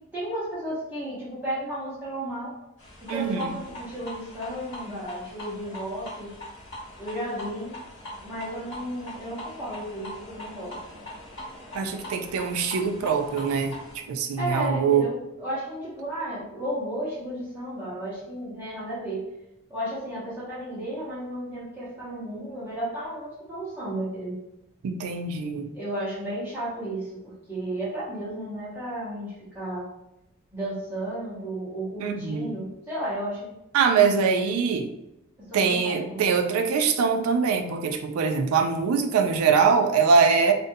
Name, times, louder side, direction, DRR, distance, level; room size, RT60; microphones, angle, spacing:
voice 1, 0.1-2.5 3.0-6.3 7.0-7.8 8.2-10.7 14.4-19.3 19.7-24.4 25.7-29.9 30.5-33.5 35.4-36.2, right 1 dB, 10° right, -11 dB, 1.0 m, -33 dB
sound 1, 2.8-14.0, left 1 dB, 55° left, 0.9 m, -41 dB
voice 2, 3.1-3.5 11.7-15.1 24.8-25.7 32.0-32.5 33.7-34.9 35.5-40.5, right 5 dB, 75° right, 5 dB, 0.3 m, -23 dB
2.5 x 2.1 x 2.6 m, 0.88 s
head